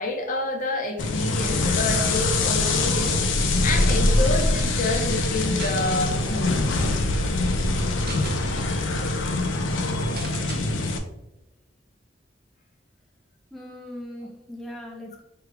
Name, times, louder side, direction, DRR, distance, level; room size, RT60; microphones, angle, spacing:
voice 1, 0.0-3.2 3.6-6.5, left 2 dB, 45° left, 2 dB, 0.7 m, -28 dB
sound 1, 1.0-11.0, left 2 dB, 80° left, 0.5 m, -23 dB
sound 2, 5.6-5.8 6.3-6.4 6.6-6.9 7.8-8.4 8.9-9.0 9.2-9.4 10.2-10.6, right 4 dB, 55° right, 0.6 m, -39 dB
voice 2, 13.5-15.2, left 1 dB, ahead, -2 dB, 0.4 m, -39 dB
4.7 x 2.3 x 3.2 m, 0.91 s
head